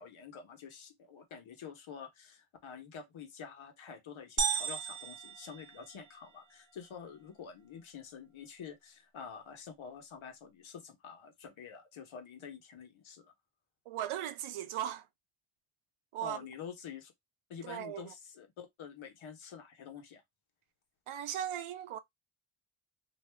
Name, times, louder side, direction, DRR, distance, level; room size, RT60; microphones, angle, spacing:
voice 1, 0.0-13.3 16.2-17.1 17.5-20.2, left 6 dB, 70° left, 1.0 m, -48 dB
sound 1, 4.4-6.3, right 7 dB, 40° right, 0.6 m, -35 dB
voice 2, 13.9-15.1 16.1-16.4 17.6-18.0 21.1-22.0, right 11 dB, 80° right, 0.6 m, -37 dB
2.6 x 2.2 x 3.2 m
cardioid pair, 95°, 49 cm